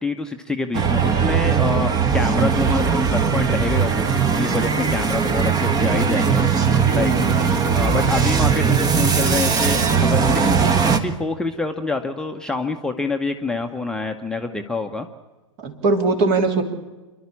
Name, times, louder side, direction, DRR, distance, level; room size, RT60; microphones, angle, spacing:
voice 1, 0.0-6.4 6.9-7.1 7.7-15.1, left 3 dB, 5° left, 3 dB, 1.0 m, -26 dB
sound 1, 0.7-11.0, right 6 dB, 20° right, 1.4 m, -19 dB
voice 2, 6.8-7.3 15.6-16.6, right 3 dB, 45° right, 6 dB, 3.1 m, -20 dB
28.0 x 12.0 x 8.5 m, 1.2 s
figure-of-eight pair, 100°, 17 cm